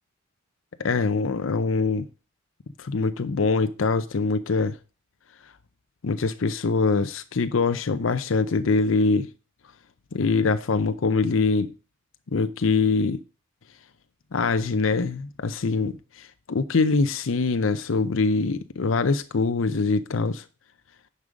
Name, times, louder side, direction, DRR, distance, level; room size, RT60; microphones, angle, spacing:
voice 1, 0.8-2.1 2.8-4.8 6.0-9.3 10.1-11.7 12.3-13.2 14.3-20.4, left 4 dB, 85° left, 0.6 m, -23 dB
9.9 x 5.4 x 5.0 m
head